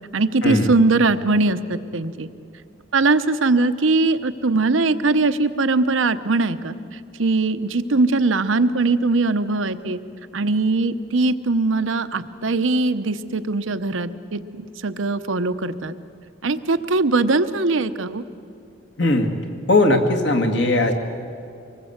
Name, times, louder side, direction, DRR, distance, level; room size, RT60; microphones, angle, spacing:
voice 1, 0.1-2.3 2.9-6.7 7.2-10.0 10.3-15.9 16.4-18.2, right 3 dB, 85° right, 12 dB, 0.9 m, -21 dB
voice 2, 19.0-19.3 19.7-20.9, left 2 dB, 60° left, 4 dB, 2.0 m, -18 dB
24.5 x 20.0 x 8.0 m, 2.5 s
head